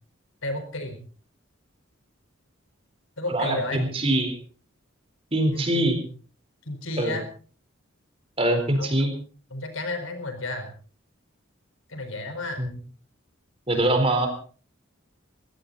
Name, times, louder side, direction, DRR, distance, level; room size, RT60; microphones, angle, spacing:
voice 1, 0.4-1.0 3.2-3.8 5.5-6.1 6.6-7.3 8.8-8.9 9.5-10.7 11.9-12.6, left 2 dB, 80° left, 7 dB, 4.5 m, -32 dB
voice 2, 3.3-4.3 5.3-6.0 7.0-7.2 8.4-9.1 12.6-12.7 13.7-14.3, right 1 dB, 25° right, 6 dB, 4.0 m, -23 dB
21.5 x 16.0 x 4.0 m, 0.40 s
head